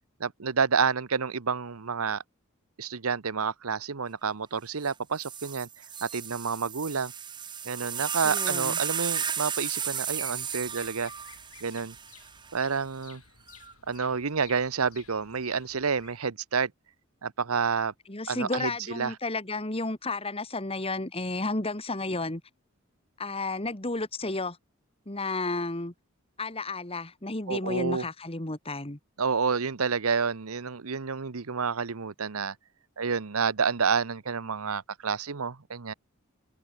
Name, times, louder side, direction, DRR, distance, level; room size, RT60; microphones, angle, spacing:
voice 1, 0.2-2.2 2.8-5.7 6.0-7.1 7.6-11.1 11.6-11.9 12.5-13.2 13.9-16.7 17.2-17.9 18.3-19.1 27.5-28.0 29.2-32.5 33.0-35.9, right 5 dB, 85° right, 0.9 m, -29 dB
sound 1, 4.8-4.9 5.2-12.6 13.5-13.9, right 8 dB, 20° right, 0.8 m, -34 dB
voice 2, 8.2-8.8 18.1-22.4 23.2-24.6 25.1-25.9 26.4-29.0, left 2 dB, 25° left, 2.2 m, -32 dB
Bird vocalization bird call bird song, 9.8-16.2, left 8 dB, 80° left, 6.2 m, -54 dB
head